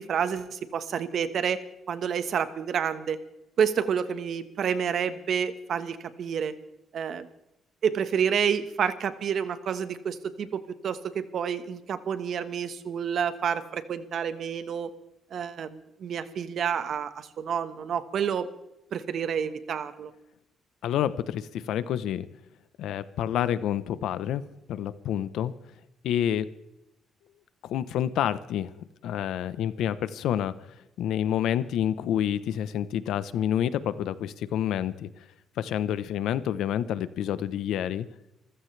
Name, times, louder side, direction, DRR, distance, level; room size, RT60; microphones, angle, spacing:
voice 1, 0.0-1.6 1.9-3.2 3.6-6.5 6.9-7.3 7.8-14.9 15.3-18.5 18.9-20.1, right 7 dB, 60° right, 11 dB, 1.4 m, -29 dB
voice 2, 20.8-22.3 22.8-25.5 26.0-26.5 27.6-28.7 29.0-30.5 31.0-35.1 35.6-38.1, left 10 dB, 80° left, 14 dB, 0.9 m, -28 dB
26.5 x 15.0 x 3.4 m, 0.87 s
cardioid pair, 90°, 0 cm